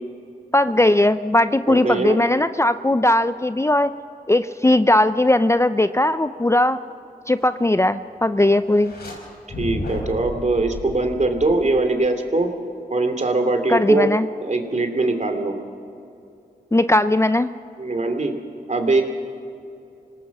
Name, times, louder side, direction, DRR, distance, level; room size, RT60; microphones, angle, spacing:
voice 1, 0.5-3.9 4.3-6.8 7.3-8.9 13.7-14.3 16.7-17.5, left 1 dB, 15° left, 12 dB, 0.6 m, -18 dB
voice 2, 1.7-2.2 9.6-12.5 12.9-14.1 14.4-15.5 17.8-18.3 18.7-19.0, right 2 dB, 45° right, 5 dB, 2.9 m, -21 dB
sound 1, 8.7-9.2 9.5-12.1, left 1 dB, 75° left, 5.8 m, -33 dB
26.5 x 18.5 x 6.1 m, 2.6 s
cardioid pair, 40°, 17 cm